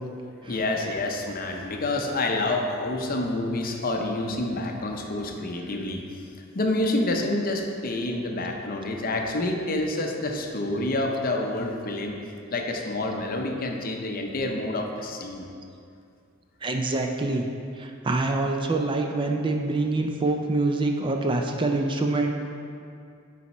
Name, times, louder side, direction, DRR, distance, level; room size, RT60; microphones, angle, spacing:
voice 1, 0.5-6.0 6.5-12.2 12.5-15.5, left 2 dB, 45° left, 2 dB, 0.7 m, -28 dB
voice 2, 16.6-17.5 17.8-22.3, right 2 dB, 25° right, 3 dB, 0.4 m, -25 dB
9.2 x 4.2 x 4.2 m, 2.4 s
head